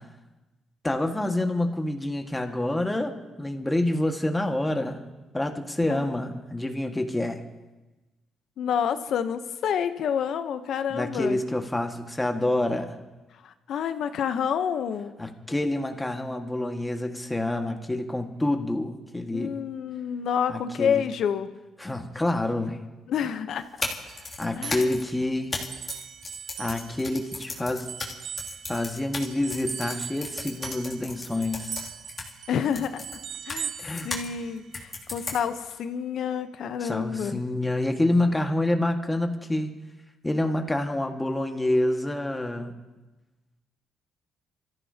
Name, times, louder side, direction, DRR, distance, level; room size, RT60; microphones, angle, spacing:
voice 1, 0.8-3.1 3.4-5.0 5.3-7.4 10.9-13.0 15.2-19.5 20.5-21.0 21.8-22.8 24.4-25.5 26.6-27.9 28.7-31.9 33.8-34.1 36.8-39.7 40.2-42.7, left 1 dB, 10° left, 4 dB, 1.6 m, -27 dB
voice 2, 8.6-11.4 13.4-15.1 19.3-21.6 23.1-23.7 24.5-24.9 32.5-33.0 33.5-33.7 34.0-37.4, left 8 dB, 70° left, 10 dB, 0.8 m, -28 dB
sound 1, 23.6-34.3 34.7-35.7, left 3 dB, 30° left, 2.7 m, -36 dB
sound 2, 24.1-27.5 27.9-34.8, right 8 dB, 70° right, 0.6 m, -40 dB
27.5 x 14.0 x 2.8 m, 1.1 s
cardioid pair, 90°, 0 cm